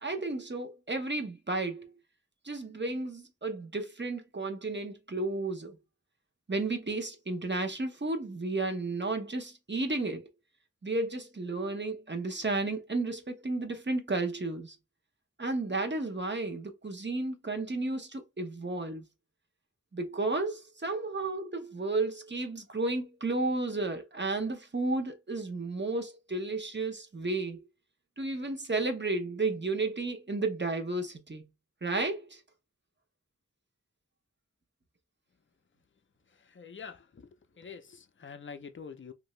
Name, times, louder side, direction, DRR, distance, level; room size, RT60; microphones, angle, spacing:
voice 1, 0.0-1.9 2.4-5.8 6.5-10.3 10.8-14.8 15.4-19.0 19.9-27.6 28.2-31.4 31.8-32.4, right 2 dB, 35° right, 0.7 m, -33 dB
voice 2, 36.5-37.3 37.6-39.1, left 6 dB, 40° left, 0.5 m, -45 dB
2.8 x 2.6 x 3.1 m
wide cardioid pair, 45°, 31 cm